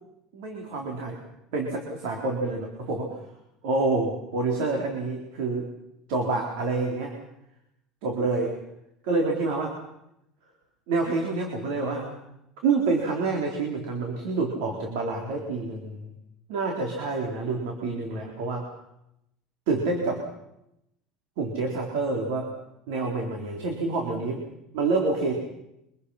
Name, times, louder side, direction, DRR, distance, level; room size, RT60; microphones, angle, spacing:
voice 1, 0.3-1.2 1.5-3.2 3.6-5.7 6.1-7.1 8.0-8.6 9.0-9.8 10.9-12.2 12.6-16.1 16.5-18.7 19.7-20.2 21.4-22.5 22.9-24.4 24.7-25.3, right 3 dB, 80° right, 1 dB, 4.0 m, -27 dB
25.0 x 24.5 x 5.8 m, 0.84 s
supercardioid pair, 135°, 0 cm